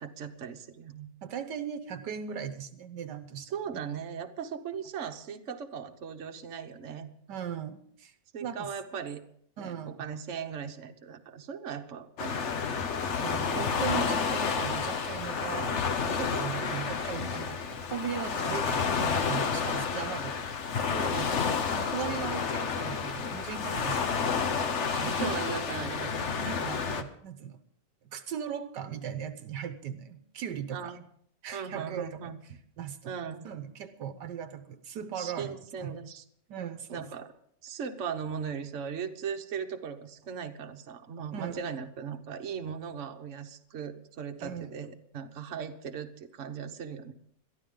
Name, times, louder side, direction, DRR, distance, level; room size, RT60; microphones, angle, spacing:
voice 1, 0.0-1.1 3.5-7.1 8.3-9.2 9.6-12.6 13.2-13.5 16.6-16.8 18.4-18.6 21.0-21.3 24.9-26.7 30.7-31.0 31.5-32.4 33.1-33.5 35.2-36.2 36.9-37.3 37.6-47.1, right 7 dB, 50° right, 5 dB, 1.3 m, -38 dB
voice 2, 1.2-3.8 7.3-8.1 8.4-8.7 9.6-10.1 13.2-15.8 16.1-21.3 21.7-24.3 24.9-25.4 26.4-27.6 28.0-30.9 31.4-32.3 32.8-33.1 33.4-35.9 36.5-37.1 41.3-41.6 44.4-44.7, right 8 dB, 75° right, 10 dB, 1.4 m, -38 dB
Waves surf, 12.2-27.0, left 5 dB, 45° left, 1.1 m, -30 dB
22.0 x 13.5 x 3.8 m, 0.66 s
omnidirectional pair, 1.9 m